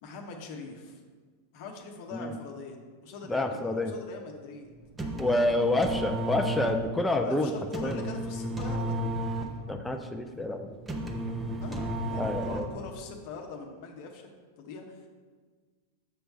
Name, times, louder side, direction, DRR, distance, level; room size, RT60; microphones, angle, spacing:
voice 1, 0.0-1.0 1.5-4.7 5.2-6.0 7.1-9.0 11.6-14.3 14.6-15.1, left 4 dB, 50° left, 2 dB, 0.9 m, -42 dB
voice 2, 3.3-3.9 5.2-7.5 7.8-7.9 9.7-10.7 12.2-12.7, left 2 dB, 5° left, 4 dB, 0.5 m, -28 dB
sound 1, 4.8-13.0, right 1 dB, 15° right, 0.8 m, -33 dB
7.2 x 4.6 x 5.4 m, 1.5 s
figure-of-eight pair, 90°, 0 cm